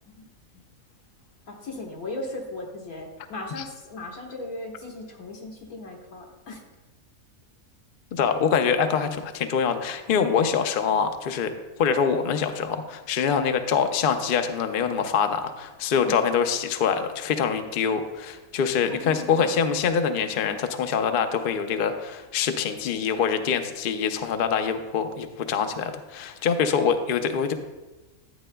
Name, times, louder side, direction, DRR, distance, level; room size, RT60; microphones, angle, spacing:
voice 1, 1.5-6.6 15.9-16.2 18.8-19.5, left 2 dB, 80° left, -1 dB, 1.8 m, -37 dB
voice 2, 8.1-11.5 11.8-27.5, left 6 dB, 60° left, 7 dB, 0.6 m, -24 dB
11.0 x 8.3 x 2.2 m, 1.1 s
omnidirectional pair, 1.5 m